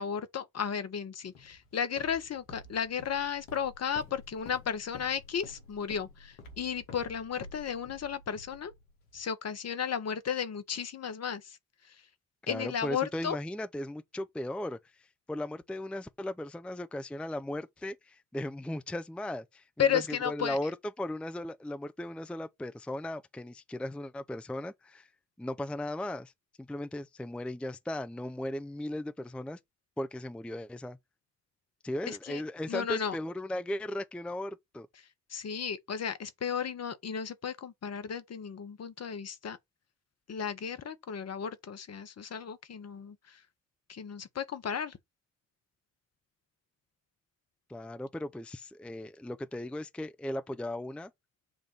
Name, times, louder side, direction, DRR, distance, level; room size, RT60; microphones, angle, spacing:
voice 1, 0.0-8.7 9.1-11.6 11.9-12.0 12.5-13.4 19.8-20.6 32.1-32.4 32.7-33.2 35.3-39.6 40.3-43.4 43.9-45.0, left 7 dB, 40° left, 1.0 m, -34 dB
Walk footsteps, 1.3-9.2, left 3 dB, 85° left, 1.2 m, -51 dB
voice 2, 12.4-20.7 21.0-25.1 25.4-26.3 26.6-29.6 30.0-31.0 31.8-34.9 47.7-51.1, left 1 dB, 5° left, 0.5 m, -37 dB
7.3 x 2.5 x 5.4 m
hypercardioid pair, 50°, 39 cm